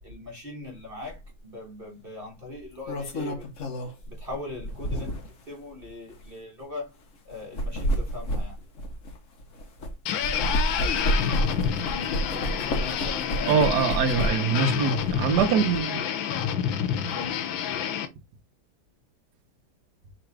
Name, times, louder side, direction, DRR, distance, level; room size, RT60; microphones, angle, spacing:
voice 1, 0.0-3.5 3.8-7.0 7.2-8.6 12.3-13.7 14.9-15.0 15.4-15.6 17.1-17.4, left 3 dB, 35° right, 1.2 m, -40 dB
sound 1, 1.1-1.3 2.5-5.4 6.1-6.2 7.3-9.9 10.2-14.6 15.0-15.8, equal, 50° left, 1.1 m, -30 dB
sound 2, 10.1-18.1, left 8 dB, 85° left, 1.5 m, -28 dB
voice 2, 13.5-16.0, right 6 dB, 65° right, 1.2 m, -23 dB
3.9 x 2.9 x 4.6 m
omnidirectional pair, 2.1 m